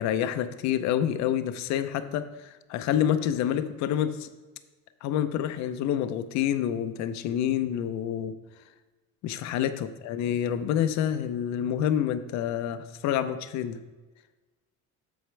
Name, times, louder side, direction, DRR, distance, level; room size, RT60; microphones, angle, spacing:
voice 1, 0.0-4.3 5.0-8.3 9.2-13.8, left 10 dB, 60° left, 11 dB, 0.6 m, -28 dB
7.9 x 7.1 x 3.2 m, 1.2 s
cardioid pair, 165°, 32 cm